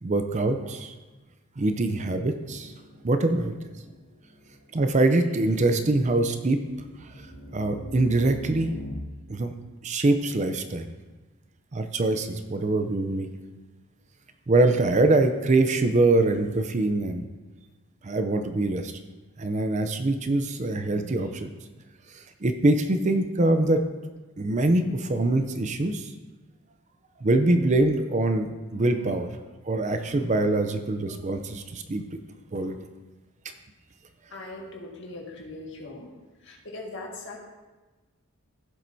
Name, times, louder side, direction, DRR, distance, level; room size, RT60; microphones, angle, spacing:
voice 1, 0.0-0.9 1.6-2.7 3.0-3.5 4.7-6.6 7.0-8.7 9.3-9.5 9.8-10.9 11.7-13.3 14.5-17.3 18.0-19.0 19.4-21.5 22.1-23.8 24.4-26.1 27.2-29.3 29.6-32.1 32.5-32.8, right 2 dB, 30° right, 8 dB, 0.5 m, -24 dB
sound 1, 1.8-4.5 6.9-8.9, left 1 dB, 90° right, 3.6 m, -43 dB
voice 2, 34.3-36.1 36.4-37.4, left 2 dB, 55° left, -1 dB, 1.8 m, -40 dB
16.0 x 7.5 x 2.7 m, 1.2 s
head